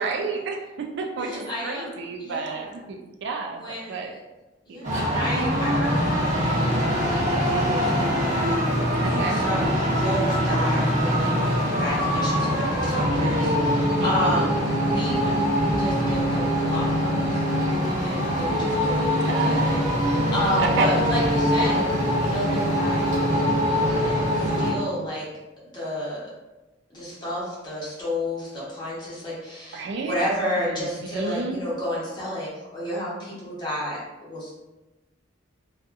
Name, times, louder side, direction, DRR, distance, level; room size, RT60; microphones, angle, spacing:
voice 1, 0.0-4.1 4.7-5.1 9.0-9.4 13.1-13.7 14.0-14.5 19.2-19.7 20.6-20.9 29.7-30.2 30.6-30.8 31.1-31.6, right 4 dB, 65° right, 3 dB, 0.4 m, -31 dB
voice 2, 1.2-1.9 2.2-2.8 3.6-4.1 4.7-7.0 7.4-15.4 15.8-21.8 22.1-25.3 25.7-26.3 26.9-34.6, left 1 dB, 25° left, -9 dB, 1.0 m, -31 dB
sound 1, 4.8-24.7, equal, 40° right, 0.9 m, -23 dB
2.7 x 2.4 x 2.3 m, 1.1 s
head